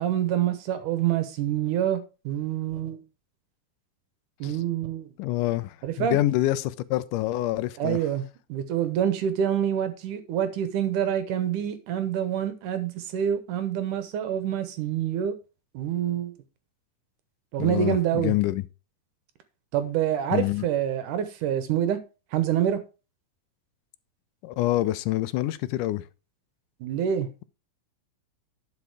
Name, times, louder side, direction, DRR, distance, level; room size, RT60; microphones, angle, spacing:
voice 1, 0.0-2.0 2.3-3.0 4.4-5.1 5.8-6.2 7.8-15.3 15.7-16.3 17.5-18.3 19.7-22.0 22.3-22.8 26.8-27.3, right 10 dB, 70° right, 2.3 m, -26 dB
voice 2, 5.2-8.0 17.6-18.6 20.3-20.7 24.4-26.1, left 16 dB, 80° left, 1.9 m, -26 dB
11.0 x 5.4 x 4.8 m
omnidirectional pair, 4.2 m